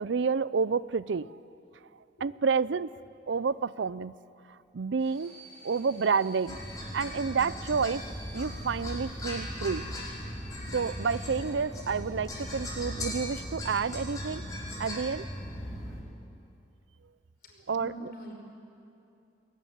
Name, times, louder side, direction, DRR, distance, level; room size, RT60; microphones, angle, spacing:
voice 1, 0.0-1.4 2.2-3.0 3.3-4.1 4.7-5.3 5.6-6.6 6.9-8.0 8.3-9.9 10.7-14.5 14.8-15.3 17.7-18.1, right 5 dB, 90° right, 18 dB, 0.5 m, -29 dB
sound 1, 5.0-11.5, right 1 dB, 35° right, 4.9 m, -52 dB
sound 2, 6.5-16.0, equal, 20° left, 4.8 m, -38 dB
voice 2, 17.4-18.3, equal, 55° left, 1 dB, 5.3 m, -45 dB
21.5 x 19.0 x 10.0 m, 2.6 s
head